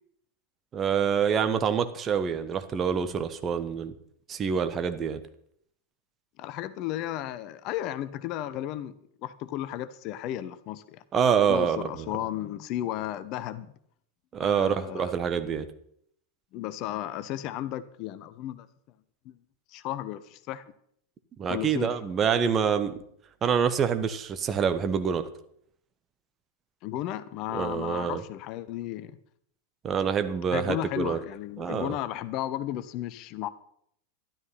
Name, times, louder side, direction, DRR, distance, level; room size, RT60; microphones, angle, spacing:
voice 1, 0.7-3.9 4.3-5.2 11.1-12.1 14.3-15.7 21.4-23.0 23.4-25.2 27.5-28.2 29.8-31.2 31.6-31.9, right 7 dB, 25° right, 10 dB, 1.2 m, -26 dB
voice 2, 6.4-8.9 9.2-11.0 11.5-13.7 14.4-15.1 16.5-18.7 19.2-19.3 19.7-20.6 21.5-21.9 26.8-29.2 30.5-33.5, left 13 dB, 40° left, 15 dB, 0.7 m, -34 dB
12.5 x 12.0 x 5.8 m, 0.67 s
figure-of-eight pair, 90°, 0 cm